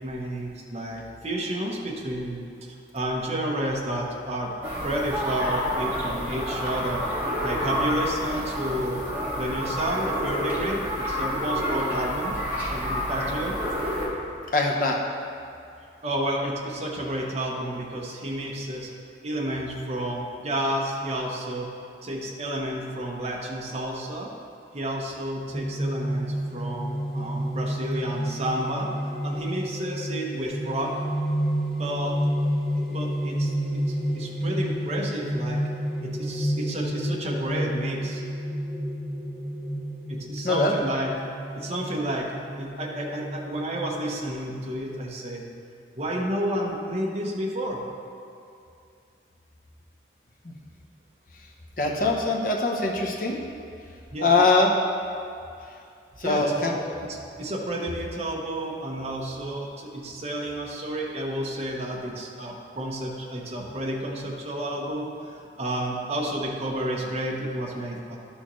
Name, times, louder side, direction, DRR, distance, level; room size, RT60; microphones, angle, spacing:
voice 1, 0.0-4.5 4.8-9.0 9.3-12.3 12.7-13.6 16.0-18.9 19.2-21.7 22.0-24.3 24.7-28.9 29.2-31.0 31.8-32.1 32.9-35.6 36.0-38.2 40.1-41.1 41.5-42.3 42.6-45.4 45.9-47.8 54.1-54.4 56.2-68.2, right 1 dB, 35° right, -3 dB, 0.9 m, -31 dB
sound 1, 4.6-14.1, equal, 10° right, 1.9 m, -29 dB
voice 2, 14.5-15.0 40.4-40.7 51.8-53.4 54.2-54.7 56.2-56.7, left 3 dB, 50° left, 0 dB, 0.9 m, -22 dB
sound 2, 25.5-44.7, equal, 5° left, 1.1 m, -30 dB
12.0 x 6.3 x 3.1 m, 2.5 s
head